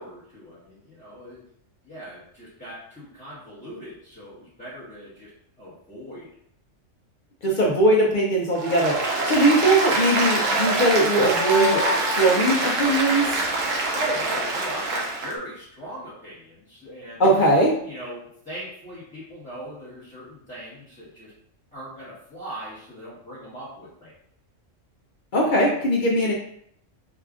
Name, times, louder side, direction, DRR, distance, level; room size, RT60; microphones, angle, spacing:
voice 1, 0.0-1.4 1.8-5.3 5.6-6.3 7.5-7.8 13.9-17.2 17.8-21.3 21.7-24.1 25.5-25.7, right 1 dB, 5° left, -12 dB, 0.8 m, -38 dB
voice 2, 7.4-11.8 12.2-13.3 17.2-17.7 25.3-26.3, right 1 dB, 55° left, -3 dB, 0.5 m, -20 dB
Applause, 8.5-15.3, right 2 dB, 80° right, 1.1 m, -24 dB
4.8 x 2.4 x 2.4 m, 0.67 s
omnidirectional pair, 1.3 m